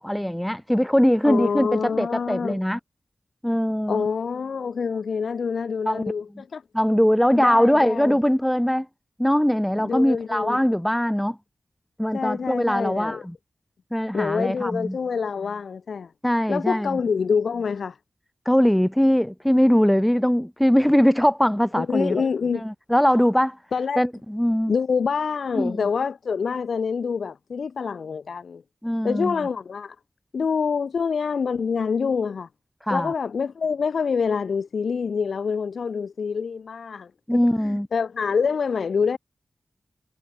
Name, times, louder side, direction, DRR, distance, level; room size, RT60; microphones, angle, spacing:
voice 1, 0.0-2.8 3.4-4.1 5.9-6.0 6.7-8.9 9.2-11.4 12.0-13.3 13.9-15.0 16.2-17.0 18.5-22.2 22.5-23.6 24.0-24.7 25.6-25.9 28.8-29.4 32.9-33.1 37.3-37.9, equal, 5° left, 0.6 m, -21 dB
voice 2, 1.2-2.6 3.9-6.6 7.3-8.2 9.7-10.6 12.1-13.3 14.1-16.1 16.5-18.0 21.8-22.7 23.7-24.0 24.7-28.6 29.0-30.0 30.3-32.5 32.9-39.2, left 5 dB, 80° left, 0.8 m, -26 dB
wide cardioid pair, 105°, 0 cm